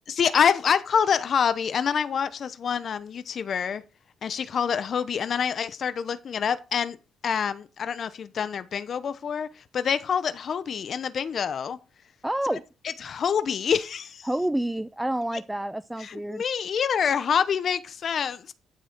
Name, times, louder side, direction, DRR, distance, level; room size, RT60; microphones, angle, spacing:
voice 1, 0.1-3.8 4.2-7.0 7.2-11.8 13.0-14.3 16.0-18.5, left 7 dB, 55° left, 0.8 m, -26 dB
voice 2, 12.2-12.6 14.2-16.4, right 1 dB, 10° right, 0.4 m, -28 dB
12.5 x 6.1 x 4.5 m
cardioid pair, 90°, 0 cm